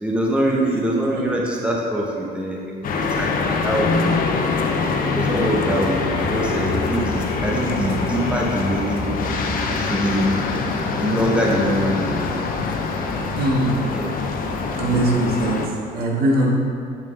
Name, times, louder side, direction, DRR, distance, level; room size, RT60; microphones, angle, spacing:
voice 1, 0.0-4.4 5.0-9.0 9.7-10.4 11.0-12.4 13.9-14.1, right 1 dB, 5° right, -2 dB, 0.9 m, -24 dB
sound 1, 2.8-15.7, left 4 dB, 55° left, 0.8 m, -24 dB
voice 2, 13.3-13.9 14.8-15.6 15.9-16.5, right 1 dB, 65° right, -3 dB, 1.9 m, -21 dB
8.3 x 7.3 x 3.4 m, 2.4 s
cardioid pair, 110°, 17 cm